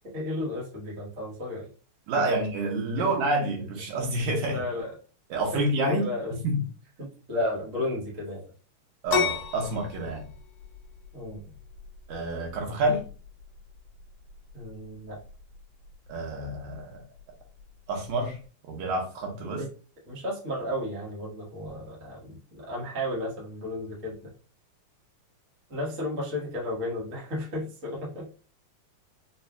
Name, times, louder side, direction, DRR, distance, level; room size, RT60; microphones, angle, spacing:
voice 1, 0.1-1.7 2.3-2.4 3.0-3.1 4.5-4.9 5.5-5.6 5.9-6.3 7.0-8.5 11.1-11.4 14.5-15.2 19.4-19.7 20.1-24.3 25.7-28.3, left 1 dB, 55° right, -5 dB, 0.8 m, -33 dB
voice 2, 2.1-4.6 5.3-6.1 6.4-6.6 9.0-10.2 12.1-13.0 16.1-17.0 17.9-18.4 18.7-19.6, right 2 dB, 75° right, 1 dB, 2.2 m, -28 dB
sound 1, 9.1-18.5, left 7 dB, 70° left, 1.8 m, -37 dB
5.3 x 2.4 x 2.3 m, 0.38 s
omnidirectional pair, 3.6 m